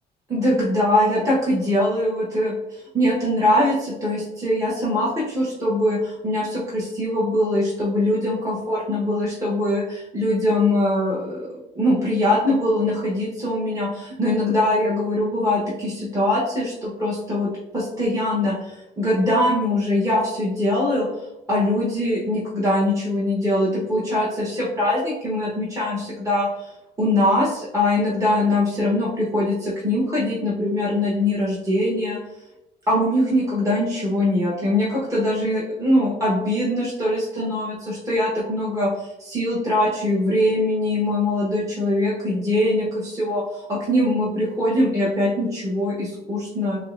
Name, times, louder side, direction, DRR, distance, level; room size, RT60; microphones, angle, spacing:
voice 1, 0.3-11.5 11.7-21.1 21.5-26.7 27.0-32.2 32.9-46.8, left 1 dB, 20° right, -7 dB, 1.1 m, -22 dB
6.3 x 2.2 x 2.5 m, 0.94 s
cardioid pair, 110°, 17 cm